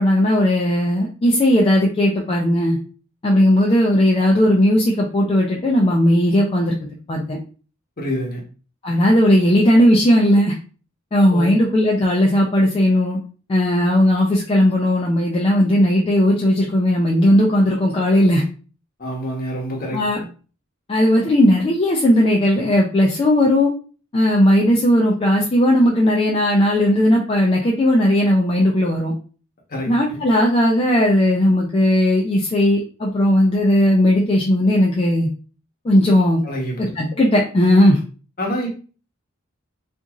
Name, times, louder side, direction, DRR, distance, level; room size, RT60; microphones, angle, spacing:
voice 1, 0.0-2.8 3.2-6.8 7.1-7.4 8.8-10.5 11.1-13.2 13.5-18.4 19.9-20.2 20.9-23.7 24.1-29.1 29.9-35.3 35.8-36.4 36.8-38.0, left 1 dB, 25° left, -2 dB, 0.4 m, -16 dB
voice 2, 8.0-8.4 11.3-11.6 19.0-20.3 29.7-30.2 36.4-36.9 38.4-38.7, equal, 45° left, -2 dB, 0.9 m, -27 dB
2.8 x 2.5 x 2.4 m, 0.38 s
head